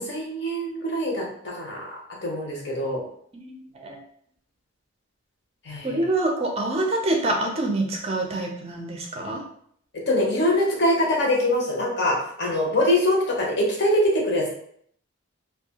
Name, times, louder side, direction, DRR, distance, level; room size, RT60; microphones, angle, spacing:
voice 1, 0.0-3.0 5.6-6.0 9.9-14.5, left 1 dB, 55° left, -2 dB, 0.7 m, -24 dB
voice 2, 3.3-4.0 5.8-9.4, right 2 dB, 30° right, 1 dB, 0.4 m, -26 dB
2.7 x 2.2 x 2.8 m, 0.66 s
head